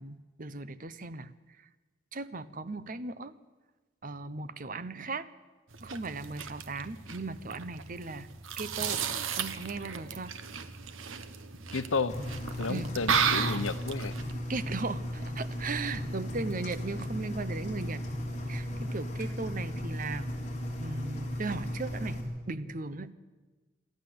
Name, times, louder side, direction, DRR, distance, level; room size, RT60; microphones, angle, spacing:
voice 1, 0.0-1.3 1.6-1.7 2.1-3.3 4.0-5.3 5.8-8.3 8.6-9.0 9.3-10.3 12.7-12.9 14.5-18.0 18.3-20.3 20.8-22.2 22.5-23.1, right 3 dB, 45° right, 14 dB, 0.9 m, -37 dB
eating watermelon, 5.7-14.3, right 6 dB, 90° right, 1.3 m, -34 dB
voice 2, 11.7-12.2 12.6-14.2, left 4 dB, 90° left, 13 dB, 0.9 m, -32 dB
Engine, 12.1-22.2, equal, 35° left, 4.3 m, -36 dB
27.5 x 12.5 x 7.9 m, 1.3 s
head